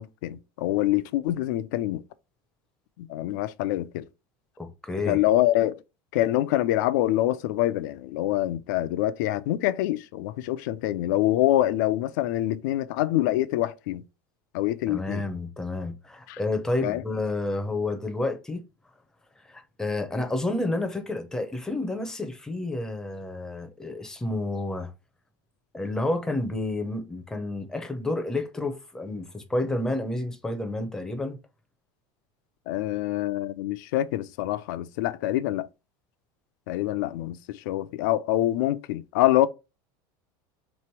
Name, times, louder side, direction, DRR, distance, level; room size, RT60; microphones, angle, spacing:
voice 1, 0.0-2.0 3.0-4.1 5.0-5.8 6.1-14.0 14.5-15.3 16.3-16.4 16.8-17.0 32.7-35.7 36.7-39.5, left 14 dB, 70° left, 0.4 m, -25 dB
voice 2, 4.6-5.2 14.9-18.6 19.4-24.9 25.7-31.4, left 2 dB, 5° left, 0.6 m, -30 dB
3.4 x 3.1 x 4.4 m
supercardioid pair, 170°, 11 cm